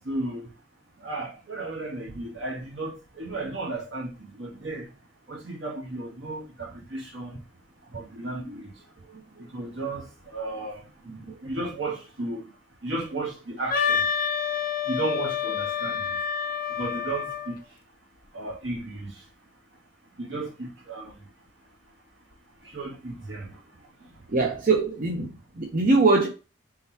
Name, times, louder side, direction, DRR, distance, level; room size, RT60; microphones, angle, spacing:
voice 1, 0.0-0.5 1.0-4.9 5.3-7.4 7.9-8.8 9.4-10.8 11.4-12.5 12.8-14.1 14.9-16.1 16.8-17.6 18.3-19.2 20.2-21.2 22.6-23.6, right 2 dB, 75° right, 1.8 m, -34 dB
Wind instrument woodwind instrument, 13.7-17.5, left 7 dB, 45° left, 0.6 m, -28 dB
voice 2, 24.3-25.3 25.6-26.3, right 3 dB, 45° right, 0.6 m, -21 dB
4.5 x 3.8 x 2.8 m
head